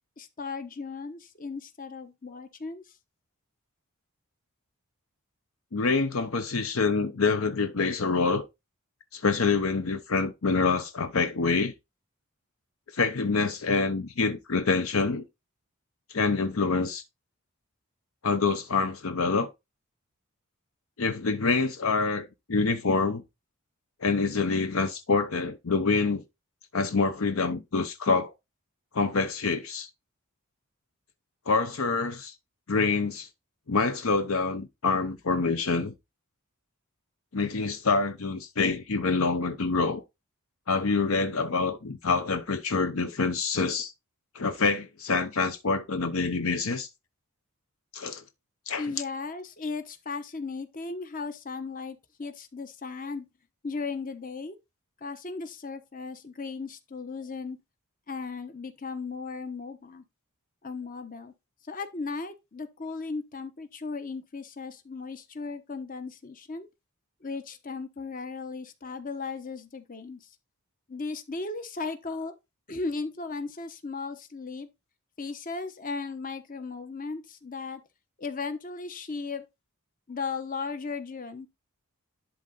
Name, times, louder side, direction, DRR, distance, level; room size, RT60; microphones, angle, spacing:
voice 1, 0.2-2.8 48.8-53.3 53.6-54.6 55.0-57.6 58.1-60.0 60.6-61.3 61.7-66.7 67.2-70.2 70.9-72.3 72.7-74.7 75.2-77.8 78.2-79.4 80.1-81.5, left 4 dB, 40° left, 1.0 m, -36 dB
voice 2, 5.7-8.5 9.1-11.7 12.9-15.2 16.1-17.0 18.2-19.5 21.0-23.2 24.0-26.2 26.7-28.3 28.9-29.9 31.5-32.3 32.7-33.3 33.7-35.9 37.3-40.0 40.7-43.9 44.3-46.9 47.9-48.2 48.7-48.9, left 4 dB, 65° left, 0.7 m, -26 dB
11.0 x 3.8 x 4.0 m
head